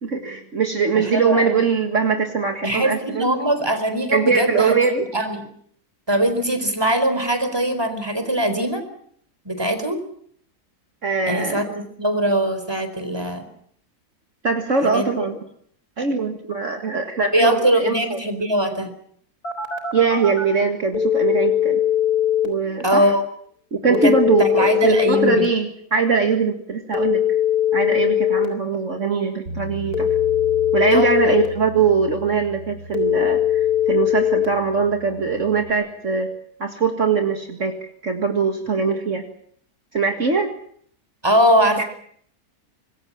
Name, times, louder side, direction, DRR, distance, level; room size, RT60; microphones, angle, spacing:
voice 1, 0.0-3.3 4.1-5.0 11.0-11.6 14.4-15.4 16.0-18.2 19.9-21.8 22.4-23.1 23.7-27.2 27.7-30.1 30.7-36.3 36.6-39.2 39.9-40.5 41.8-41.9, right 5 dB, 50° right, 5 dB, 2.2 m, -21 dB
voice 2, 0.9-1.5 2.6-4.7 5.1-5.4 6.1-8.8 9.4-10.0 11.3-13.5 14.9-15.3 17.3-18.9 22.8-23.2 23.9-24.1 24.4-25.5 30.9-31.3 41.2-41.8, right 1 dB, 15° right, 8 dB, 4.2 m, -21 dB
Telephone, 19.4-20.4 20.9-22.5 23.9-25.5 26.9-28.5 29.9-31.5 32.9-34.5, left 10 dB, 75° left, 4.6 m, -20 dB
Bass guitar, 29.5-35.7, equal, 85° right, 5.1 m, -37 dB
26.0 x 21.0 x 7.4 m, 0.64 s
omnidirectional pair, 1.6 m